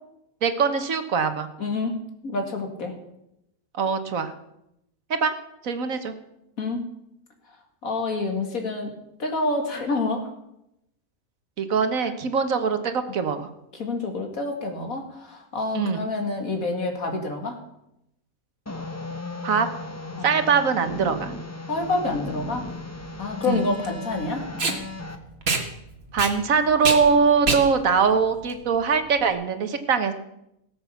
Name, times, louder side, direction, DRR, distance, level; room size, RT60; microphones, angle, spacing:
voice 1, 0.4-1.5 3.7-4.3 5.1-5.3 5.6-6.1 11.6-13.5 15.7-16.0 19.4-19.7 20.2-21.3 23.5-23.7 26.1-30.1, right 5 dB, 70° right, 8 dB, 1.6 m, -22 dB
voice 2, 1.6-1.9 2.2-3.0 6.6-6.8 7.8-8.9 9.2-10.3 13.7-17.6 20.2-20.3 21.7-22.6 23.2-24.4, left 3 dB, 75° left, 4 dB, 2.7 m, -27 dB
sound 1, 18.7-25.2, left 2 dB, 15° left, 0.9 m, -36 dB
Packing tape duct tape, 21.8-29.3, right 3 dB, 45° right, 1.9 m, -29 dB
18.0 x 7.6 x 7.0 m, 0.83 s
omnidirectional pair, 1.5 m